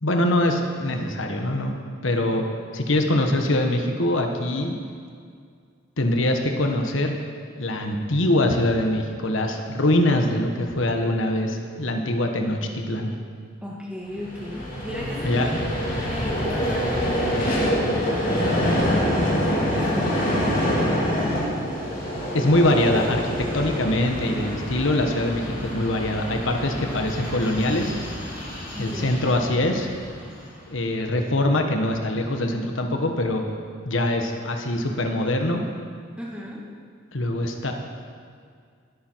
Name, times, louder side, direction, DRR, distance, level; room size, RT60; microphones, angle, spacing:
voice 1, 0.0-2.4 2.7-4.7 6.0-7.1 7.6-13.1 15.2-15.6 22.3-27.9 28.8-29.9 30.7-33.4 33.8-35.6 37.1-37.7, left 1 dB, 70° left, 4 dB, 1.3 m, -23 dB
voice 2, 13.6-15.7 16.0-20.2 28.7-29.2 36.2-36.6, left 1 dB, 5° right, -3 dB, 1.9 m, -36 dB
Vehicle, 14.1-30.5, equal, 40° left, 3.9 m, -26 dB
20.5 x 9.0 x 4.6 m, 2.1 s
head